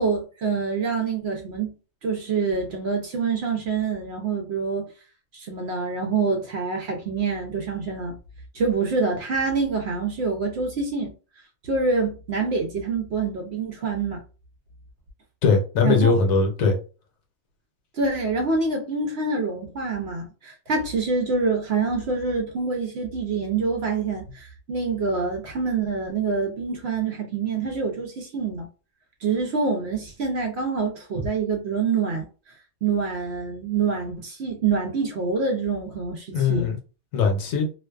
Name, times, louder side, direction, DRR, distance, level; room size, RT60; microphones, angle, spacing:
voice 1, 0.0-1.7 2.0-4.9 5.3-8.2 8.5-11.1 11.6-14.2 15.8-16.1 17.9-28.7 29.2-32.3 32.8-36.7, right 4 dB, 65° right, 0.7 m, -26 dB
voice 2, 15.4-16.8 36.3-36.8 37.1-37.7, left 4 dB, 75° left, 1.1 m, -20 dB
2.4 x 2.3 x 2.3 m
omnidirectional pair, 1.4 m